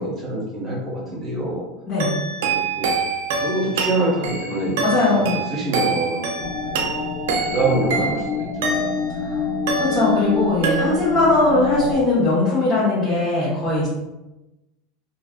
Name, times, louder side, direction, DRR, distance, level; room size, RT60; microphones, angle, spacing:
voice 1, 0.0-1.7 2.4-2.9 3.4-6.9 7.4-9.1, right 2 dB, 25° right, -5 dB, 1.1 m, -26 dB
sound 1, 2.0-9.2 9.7-10.4 10.6-11.3, right 4 dB, 75° right, 0.4 m, -26 dB
voice 2, 4.8-5.4 9.2-9.4 9.8-13.9, left 2 dB, 25° left, -11 dB, 1.1 m, -19 dB
sound 2, 6.4-11.9, left 4 dB, 50° left, 0.8 m, -27 dB
2.5 x 2.2 x 2.4 m, 1.0 s
supercardioid pair, 120°, 0 cm